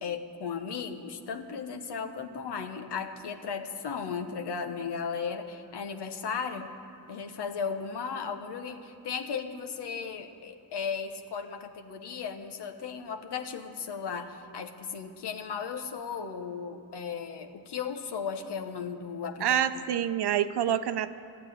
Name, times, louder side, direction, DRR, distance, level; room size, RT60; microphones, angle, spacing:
voice 1, 0.0-6.7 7.1-19.8, left 6 dB, 90° left, 7 dB, 1.0 m, -36 dB
voice 2, 19.4-21.2, right 10 dB, 80° right, 12 dB, 0.7 m, -27 dB
13.0 x 9.0 x 9.8 m, 2.6 s
cardioid pair, 60°, 40 cm